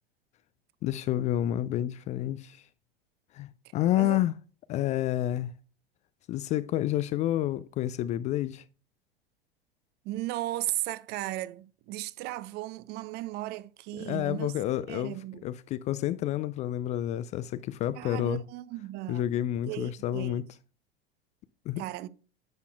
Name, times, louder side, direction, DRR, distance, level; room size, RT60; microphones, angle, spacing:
voice 1, 0.8-2.6 3.3-4.3 4.7-5.5 6.3-8.6 14.0-15.2 15.4-18.4 19.1-20.4 21.7-21.8, left 13 dB, 25° left, 0.3 m, -29 dB
voice 2, 10.0-14.5 14.9-15.5 18.0-19.2 19.7-20.4 21.8-22.1, right 16 dB, 35° right, 0.5 m, -36 dB
10.5 x 8.3 x 2.3 m
figure-of-eight pair, 85°, 29 cm